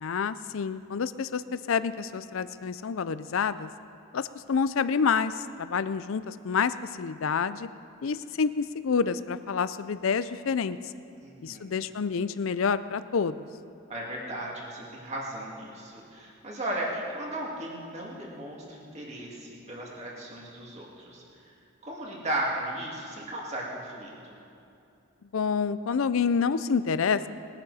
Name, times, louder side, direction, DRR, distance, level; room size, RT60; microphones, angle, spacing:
voice 1, 0.0-3.7 4.1-7.7 8.0-10.8 11.4-13.4 25.3-27.3, left 6 dB, 70° left, 14 dB, 0.5 m, -28 dB
voice 2, 11.2-11.9 13.9-21.2 21.8-24.4, right 1 dB, 30° right, -3 dB, 2.3 m, -36 dB
21.0 x 10.5 x 4.2 m, 2.7 s
head